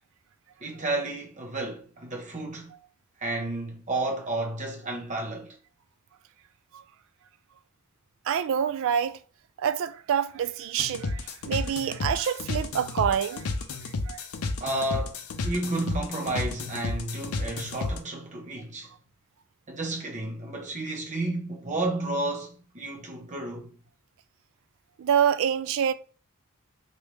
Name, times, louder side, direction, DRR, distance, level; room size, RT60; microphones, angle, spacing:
voice 1, 0.6-2.7 3.2-5.6 14.6-18.9 19.7-23.7, right 2 dB, 35° right, 0.9 m, -32 dB
voice 2, 8.3-9.2 9.6-13.5 14.1-14.2 25.0-25.9, right 8 dB, 65° right, 0.3 m, -26 dB
sound 1, 10.8-18.0, left 3 dB, 75° left, 0.5 m, -32 dB
3.2 x 2.7 x 2.9 m
head